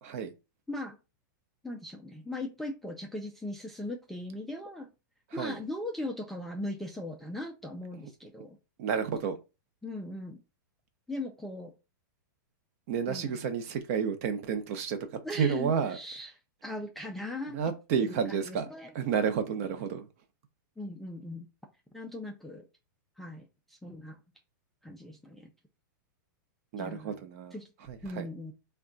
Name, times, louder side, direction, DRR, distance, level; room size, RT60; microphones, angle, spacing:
voice 1, 0.0-0.3 5.3-5.6 8.8-9.4 12.9-16.0 17.5-18.7 18.9-20.1 26.7-27.6 27.9-28.3, right 7 dB, 45° right, 0.7 m, -31 dB
voice 2, 1.6-4.9 5.3-8.6 9.8-10.4 11.1-11.7 13.1-13.3 15.2-16.3 16.6-17.6 18.0-18.9 20.8-21.5 21.9-22.6 23.2-24.2 24.8-25.5 26.8-27.1 27.5-27.7 28.0-28.5, left 1 dB, ahead, 0.3 m, -39 dB
3.5 x 2.2 x 3.8 m
supercardioid pair, 155°, 11 cm